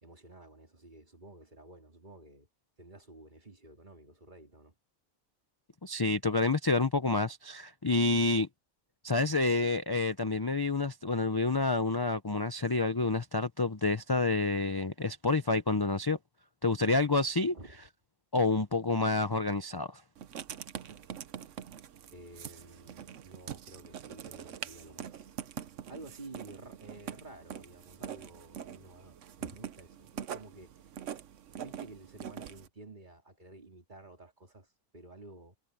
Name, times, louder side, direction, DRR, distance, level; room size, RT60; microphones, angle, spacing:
voice 1, 0.0-2.5 2.8-4.7 17.4-17.8 22.1-30.7 31.5-35.6, right 2 dB, 30° right, 3.0 m, -52 dB
voice 2, 5.8-8.5 9.0-16.2 16.6-17.5 18.3-20.0, left 3 dB, 30° left, 0.4 m, -28 dB
Writing, 20.2-32.7, right 9 dB, 60° right, 1.1 m, -44 dB
omnidirectional pair, 1.6 m